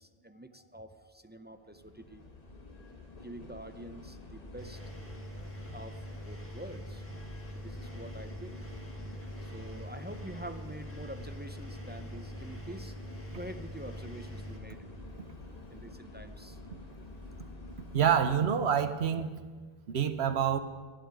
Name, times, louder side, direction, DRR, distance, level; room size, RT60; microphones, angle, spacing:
voice 1, 0.0-2.2 3.2-4.8 5.7-7.1 7.5-8.6 9.4-13.0 13.3-14.9 15.7-16.6, right 1 dB, 15° right, 8 dB, 0.3 m, -46 dB
sound 1, 1.5-18.1, left 2 dB, 40° left, 1.3 m, -48 dB
Engine, 4.6-14.6, equal, 10° left, 1.6 m, -44 dB
voice 2, 17.9-19.3 19.9-20.6, right 8 dB, 90° right, 10 dB, 1.1 m, -27 dB
12.5 x 8.0 x 9.5 m, 1.5 s
omnidirectional pair, 1.1 m